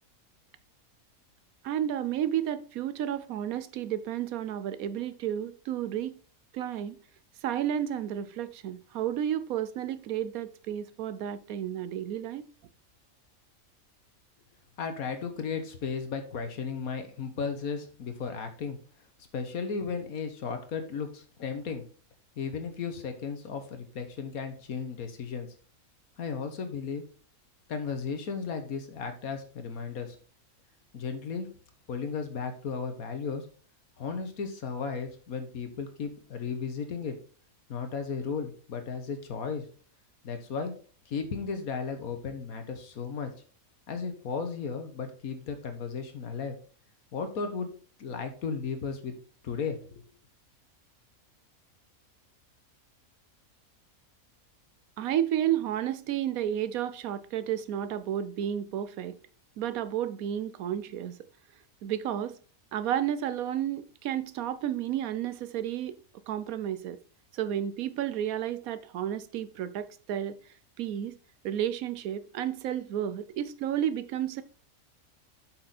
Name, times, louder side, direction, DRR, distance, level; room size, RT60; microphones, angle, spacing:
voice 1, 1.6-6.2 6.5-7.0 7.4-12.4 55.0-59.2 59.6-61.2 61.8-62.4 62.7-65.9 66.3-67.0 67.3-70.4 70.8-71.2 71.4-74.4, right 10 dB, 75° right, 1.1 m, -32 dB
voice 2, 14.8-18.8 19.3-21.9 22.4-25.5 26.2-27.0 27.7-30.2 30.9-31.5 31.9-33.4 34.0-37.2 37.7-39.7 40.2-40.7 41.1-43.3 43.9-46.6 47.1-47.7 48.0-49.2 49.4-50.1, left 5 dB, 75° left, 1.7 m, -35 dB
7.5 x 5.9 x 4.2 m
omnidirectional pair, 1.5 m